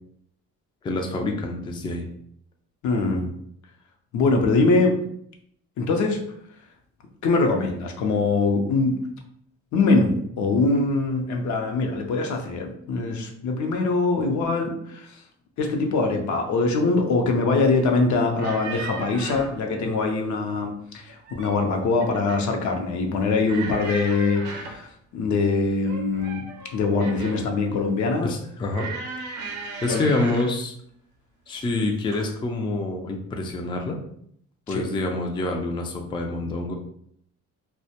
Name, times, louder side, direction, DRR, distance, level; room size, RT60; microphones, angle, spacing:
voice 1, 0.8-2.1 28.2-28.9 29.8-30.7 31.5-34.0 34.7-36.7, left 2 dB, 15° left, 2 dB, 0.3 m, -27 dB
voice 2, 2.8-3.3 4.1-5.0 5.8-6.2 7.2-9.0 9.7-15.2 15.6-26.4 26.7-28.3 29.9-30.1 34.7-34.9, left 3 dB, 70° left, 2 dB, 0.6 m, -23 dB
sound 1, 18.4-19.6 21.0-21.7 22.0-22.5 23.4-24.9 25.8-27.5 28.7-30.6 31.5-31.8 32.1-32.3, right 4 dB, 75° right, 0.5 m, -36 dB
2.1 x 2.1 x 2.7 m, 0.69 s
cardioid pair, 90°, 30 cm